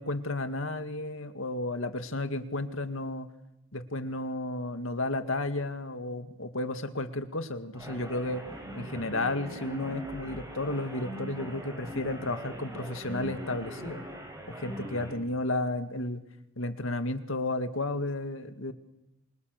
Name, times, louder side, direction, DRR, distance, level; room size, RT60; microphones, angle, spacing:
voice 1, 0.0-3.3 3.7-8.4 8.7-14.0 14.5-16.2 16.6-18.7, left 2 dB, 70° left, 9 dB, 2.1 m, -33 dB
sound 1, 7.7-15.2, equal, 15° right, 5.7 m, -41 dB
28.0 x 26.5 x 6.7 m, 0.87 s
head